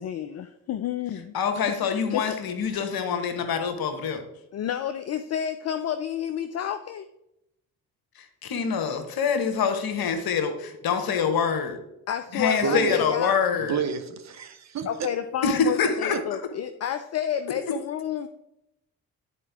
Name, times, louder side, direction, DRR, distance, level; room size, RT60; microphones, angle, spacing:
voice 1, 0.0-1.3 2.1-2.2 2.8-2.9 4.5-7.1 12.1-13.3 14.9-18.3, left 10 dB, 35° left, 9 dB, 0.5 m, -30 dB
voice 2, 1.3-4.2 8.4-11.8 12.3-13.8 15.4-16.4, left 6 dB, 55° left, 7 dB, 1.2 m, -25 dB
voice 3, 12.3-13.0 13.7-15.1 16.1-16.2, right 6 dB, 40° right, 8 dB, 0.8 m, -29 dB
10.0 x 4.5 x 3.5 m, 0.83 s
figure-of-eight pair, 40°, 44 cm